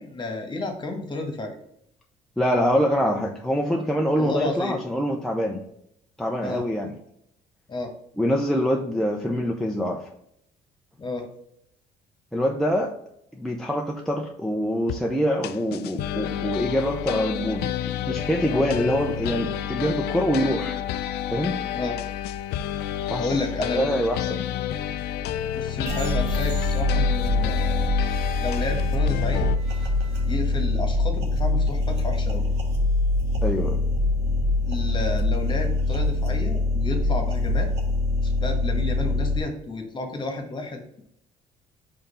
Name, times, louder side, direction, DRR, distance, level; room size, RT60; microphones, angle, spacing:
voice 1, 0.0-1.5 4.2-4.8 6.4-6.6 7.7-7.9 11.0-11.3 18.4-18.7 21.7-22.0 23.2-23.9 25.5-27.9 28.4-29.5 30.3-32.4 34.6-37.7 38.2-41.0, left 2 dB, 25° left, 1.5 m, -31 dB
voice 2, 2.4-5.6 6.2-7.0 8.2-10.1 12.3-12.9 13.4-20.8 21.3-21.6 23.1-23.4 23.7-24.5 33.4-33.8, equal, ahead, 0.6 m, -25 dB
sound 1, 14.9-15.0 15.4-29.6, left 10 dB, 75° left, 0.4 m, -30 dB
sound 2, 25.9-39.4, left 2 dB, 75° right, 1.6 m, -24 dB
5.2 x 3.8 x 5.4 m
cardioid pair, 110°, 17 cm